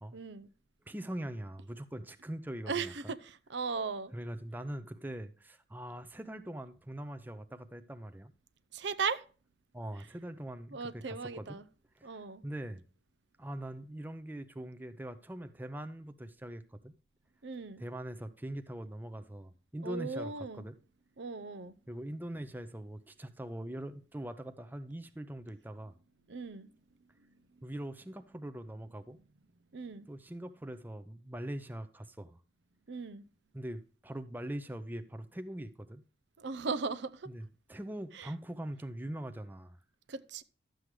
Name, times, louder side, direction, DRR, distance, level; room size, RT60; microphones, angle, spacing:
voice 1, 0.1-0.5 2.7-4.1 8.7-9.2 10.7-11.6 12.0-12.4 17.4-17.8 19.8-20.6 21.2-21.7 26.3-26.7 29.7-30.1 32.9-33.2 36.4-37.3 38.1-38.3 40.1-40.4, right 4 dB, 65° right, 0.6 m, -37 dB
voice 2, 0.9-3.1 4.1-8.3 9.7-11.6 12.0-12.8 13.4-16.9 17.8-20.7 21.9-26.0 27.6-29.2 30.1-32.4 33.5-36.0 37.3-39.8, right 1 dB, 10° right, 0.6 m, -42 dB
12.0 x 7.7 x 3.2 m
head